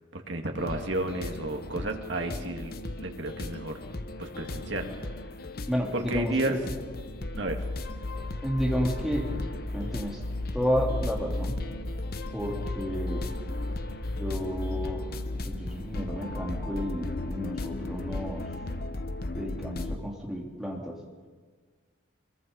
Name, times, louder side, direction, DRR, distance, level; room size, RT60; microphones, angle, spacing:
voice 1, 0.1-2.7 3.0-3.8 4.2-4.9 5.9-6.6 7.4-7.6, right 2 dB, 75° right, 3 dB, 2.3 m, -32 dB
sound 1, 0.6-20.0, left 2 dB, 50° left, 1.0 m, -35 dB
voice 2, 5.7-6.6 8.4-9.3 9.7-10.2 10.5-11.5 12.3-13.3 14.1-15.1 15.4-18.5 19.3-21.0, equal, ahead, -2 dB, 3.1 m, -31 dB
23.0 x 22.0 x 5.5 m, 1.4 s
head